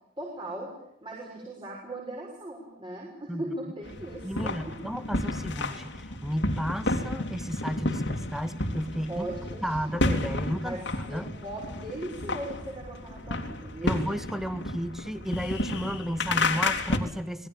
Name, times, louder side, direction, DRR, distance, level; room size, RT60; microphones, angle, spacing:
voice 1, 0.2-0.7 1.0-4.9 9.1-10.0 10.6-10.8 11.1-14.0, right 1 dB, 25° right, -2 dB, 6.3 m, -38 dB
sound 1, 3.8-17.0, left 2 dB, 55° left, 3.1 m, -31 dB
voice 2, 4.2-9.3 9.6-11.3 13.8-17.5, equal, ahead, 10 dB, 1.8 m, -33 dB
26.5 x 20.0 x 8.9 m, 0.77 s
head